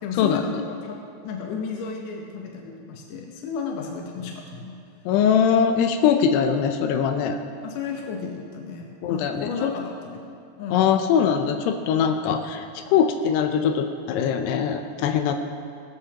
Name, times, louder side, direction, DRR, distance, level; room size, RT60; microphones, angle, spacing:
voice 1, 0.0-4.8 7.6-11.0, left 5 dB, 70° left, 1 dB, 2.1 m, -33 dB
voice 2, 5.1-7.4 9.0-9.7 10.7-15.3, left 7 dB, 85° left, 6 dB, 2.7 m, -22 dB
17.5 x 14.5 x 2.9 m, 2.4 s
omnidirectional pair, 4.7 m